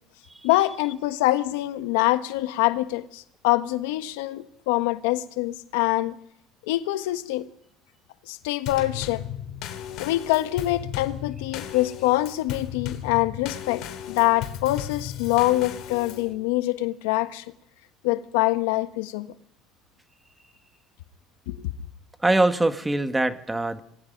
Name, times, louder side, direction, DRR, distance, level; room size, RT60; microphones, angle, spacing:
voice 1, 0.4-6.2 6.7-7.5 8.3-9.2 10.0-17.4 18.0-19.3 21.5-21.7, left 17 dB, 90° left, 1.4 m, -25 dB
Drum kit / Snare drum / Bass drum, 8.7-16.3, left 11 dB, 60° left, 3.5 m, -35 dB
voice 2, 22.2-23.8, right 2 dB, 10° right, 1.5 m, -23 dB
27.0 x 19.0 x 5.3 m
supercardioid pair, 120°, 0 cm